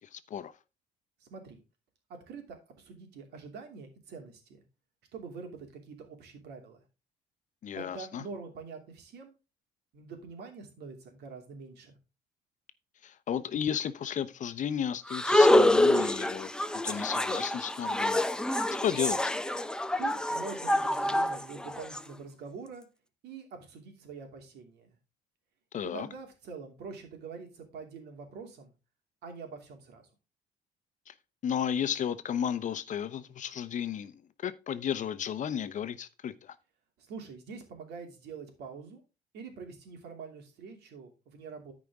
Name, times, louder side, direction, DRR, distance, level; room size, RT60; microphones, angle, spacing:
voice 1, 0.1-0.5 7.6-8.2 13.0-16.5 16.8-18.2 18.7-19.3 25.7-26.1 31.1-31.2 31.4-36.5, left 9 dB, 50° left, 0.8 m, -33 dB
voice 2, 1.2-1.6 2.3-4.6 5.1-6.8 7.7-9.3 9.9-12.0 20.0-22.9 23.2-25.0 25.8-28.7 29.2-30.1 37.0-39.0 39.3-41.7, right 5 dB, 75° right, 2.8 m, -45 dB
sound 1, 15.1-22.0, left 1 dB, 5° left, 0.6 m, -26 dB
13.5 x 5.0 x 3.6 m
cardioid pair, 110°, 17 cm